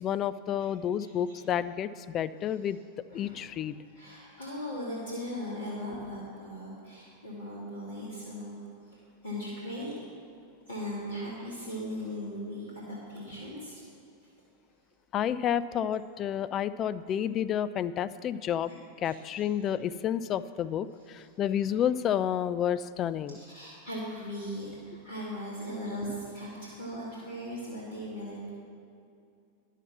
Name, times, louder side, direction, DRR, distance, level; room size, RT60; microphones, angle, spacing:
voice 1, 0.0-2.8 3.1-3.8 15.1-18.7 19.0-23.4, left 9 dB, 30° left, 14 dB, 0.3 m, -30 dB
voice 2, 3.1-3.5 3.9-9.9 10.7-13.8 18.6-18.8 19.0-19.2 19.6-19.8 21.2-21.3 21.6-21.7 23.3-28.5, equal, 70° left, -7 dB, 2.2 m, -39 dB
10.5 x 7.4 x 6.0 m, 2.4 s
figure-of-eight pair, 90°, 0 cm